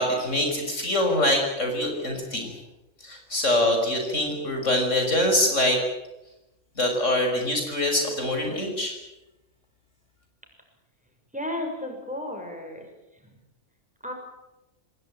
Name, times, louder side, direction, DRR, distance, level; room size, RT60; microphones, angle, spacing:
voice 1, 0.0-2.5 3.0-5.8 6.8-8.9, left 1 dB, 80° left, 3 dB, 6.4 m, -24 dB
voice 2, 11.3-12.9 13.2-13.4 14.0-14.1, left 1 dB, 5° right, 2 dB, 6.5 m, -33 dB
26.5 x 19.0 x 9.1 m, 0.99 s
omnidirectional pair, 1.3 m